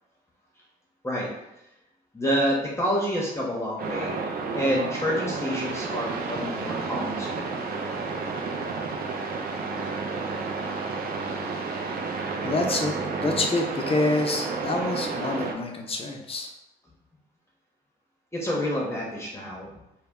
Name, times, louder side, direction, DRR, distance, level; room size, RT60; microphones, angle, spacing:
voice 1, 2.1-4.3 4.5-7.5 18.3-19.7, equal, 15° left, -4 dB, 0.9 m, -28 dB
Radio noise and static, 3.8-15.5, right 4 dB, 60° right, 0.4 m, -31 dB
voice 2, 12.1-12.9 13.2-16.5, left 3 dB, 35° left, 3 dB, 0.5 m, -27 dB
2.1 x 2.0 x 3.6 m, 0.88 s
supercardioid pair, 60°, 17 cm